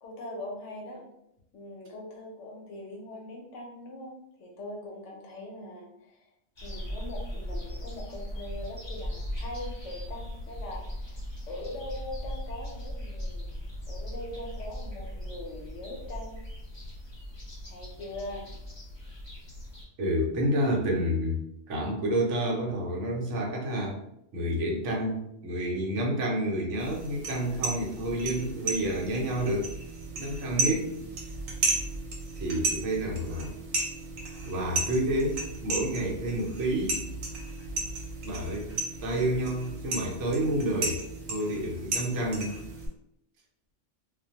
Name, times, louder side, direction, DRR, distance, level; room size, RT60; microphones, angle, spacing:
voice 1, 0.0-1.1 1.5-6.1 6.6-11.2 11.5-13.5 13.9-16.4 17.7-18.4 30.6-30.9, left 1 dB, 70° left, -1 dB, 0.9 m, -41 dB
sound 1, 6.6-19.8, equal, 30° left, 0.6 m, -38 dB
voice 2, 20.0-21.4 21.7-23.9 24.3-29.7 30.1-30.9 32.3-33.6 34.4-37.0 38.2-38.8 39.0-41.0 41.3-42.6, right 1 dB, 70° right, -1 dB, 0.9 m, -29 dB
sound 2, 26.8-42.9, right 2 dB, 90° right, 1.0 m, -34 dB
2.4 x 2.1 x 2.7 m, 0.80 s
omnidirectional pair, 1.3 m